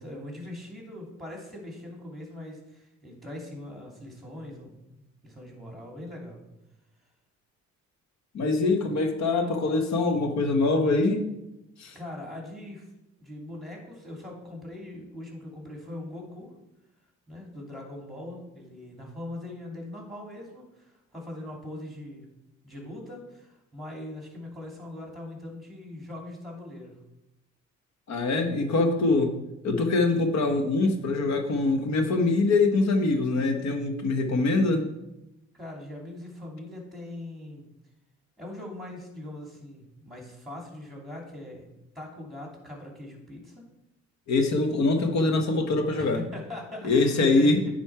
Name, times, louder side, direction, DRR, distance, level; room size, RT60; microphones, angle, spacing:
voice 1, 0.0-6.4 11.9-12.9 13.2-16.5 17.3-22.3 22.6-27.0 35.5-37.6 38.4-41.7 41.9-43.6 45.9-47.6, left 1 dB, ahead, -1 dB, 2.8 m, -41 dB
voice 2, 8.3-11.2 11.8-11.9 28.1-29.3 29.6-34.8 44.3-46.2 46.8-47.6, left 3 dB, 65° left, 5 dB, 1.2 m, -23 dB
9.6 x 4.4 x 4.6 m, 0.91 s
cardioid pair, 90°, 30 cm